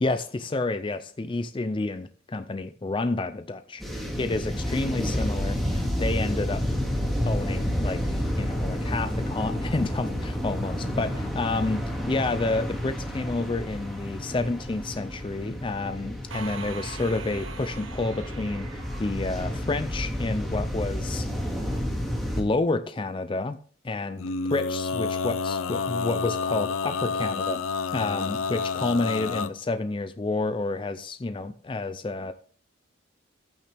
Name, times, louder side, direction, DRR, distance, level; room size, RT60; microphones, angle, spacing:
voice 1, 0.0-6.6 7.2-21.3 21.6-21.7 22.3-23.6 23.8-27.6 27.9-32.3, left 2 dB, 25° left, 10 dB, 0.4 m, -29 dB
sound 1, 3.8-22.4, equal, ahead, 2.1 m, -30 dB
sound 2, 16.3-20.0, right 5 dB, 85° right, 1.4 m, -42 dB
Male singing, 24.2-29.5, left 4 dB, 90° left, 0.6 m, -29 dB
12.0 x 8.8 x 3.4 m, 0.43 s
head